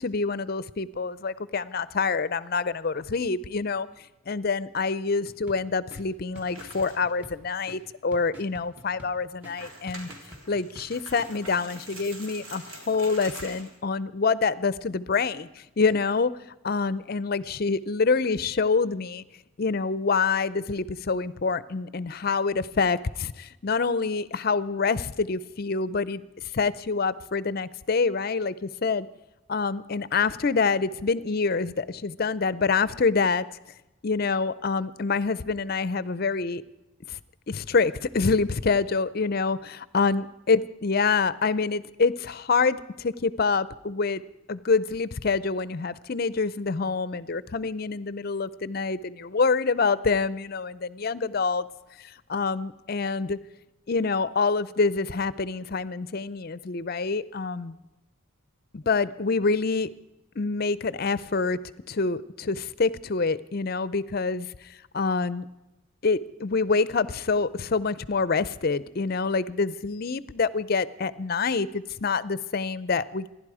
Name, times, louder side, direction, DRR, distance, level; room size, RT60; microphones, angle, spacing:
voice 1, 0.0-3.9 4.3-10.1 10.5-16.3 16.6-19.2 19.6-29.1 29.5-33.4 34.0-36.6 37.1-37.2 37.5-44.2 44.5-51.7 52.0-53.4 53.9-57.8 58.7-59.9 60.4-61.6 61.9-64.5 64.9-65.5 66.0-73.3, left 4 dB, 45° left, 17 dB, 0.5 m, -26 dB
sound 1, 5.2-11.3, equal, 10° right, 1.4 m, -49 dB
sound 2, 6.4-7.1 7.5-7.6 8.2-8.3 9.3-13.8, right 2 dB, 80° right, 3.4 m, -44 dB
26.5 x 11.0 x 4.9 m, 0.96 s
head